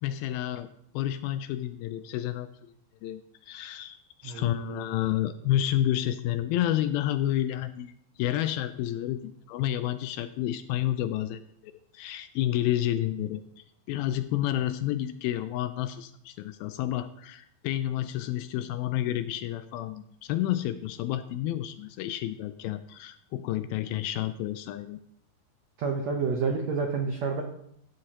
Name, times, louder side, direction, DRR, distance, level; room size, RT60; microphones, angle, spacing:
voice 1, 0.0-0.7 0.9-2.7 3.0-7.9 8.2-13.4 13.9-25.0, left 12 dB, 80° left, 11 dB, 2.2 m, -30 dB
voice 2, 4.2-4.8 25.8-27.4, right 5 dB, 80° right, 2 dB, 1.5 m, -29 dB
14.5 x 9.4 x 2.9 m, 0.71 s
omnidirectional pair, 4.5 m